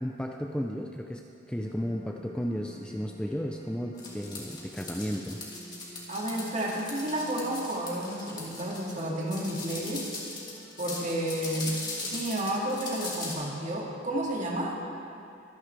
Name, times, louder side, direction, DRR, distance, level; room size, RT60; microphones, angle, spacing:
voice 1, 0.0-1.2 1.5-5.4, equal, 5° left, 2 dB, 0.5 m, -33 dB
sound 1, 1.5-12.9, equal, 55° left, 3.4 m, -51 dB
sound 2, 4.0-13.3, left 3 dB, 25° left, 2.6 m, -39 dB
voice 2, 6.1-10.1 10.8-14.8, right 1 dB, 40° right, -2 dB, 2.1 m, -31 dB
24.5 x 11.0 x 3.4 m, 2.7 s
head